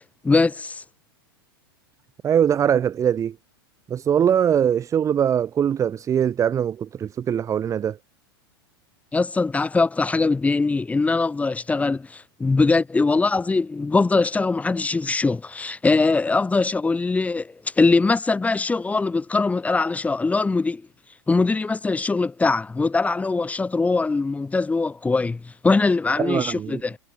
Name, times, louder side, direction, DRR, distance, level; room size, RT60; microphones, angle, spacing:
voice 1, 0.2-0.8 9.1-20.8 21.3-27.0, left 3 dB, 10° left, 2.4 m, -22 dB
voice 2, 2.2-3.3 3.9-8.0 26.2-26.8, right 9 dB, 25° right, 1.5 m, -22 dB
figure-of-eight pair, 95°, 13 cm